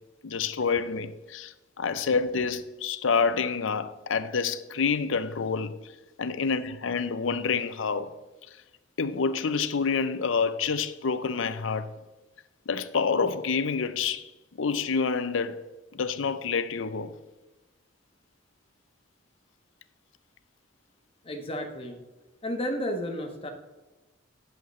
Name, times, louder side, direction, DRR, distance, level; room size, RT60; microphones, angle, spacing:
voice 1, 0.2-5.7 6.2-8.1 9.0-11.9 12.7-14.3 14.6-15.6 15.9-17.1, left 5 dB, 75° left, 0.6 m, -28 dB
voice 2, 21.2-22.0 22.4-23.5, equal, 30° left, 1.2 m, -32 dB
10.5 x 7.4 x 3.1 m
head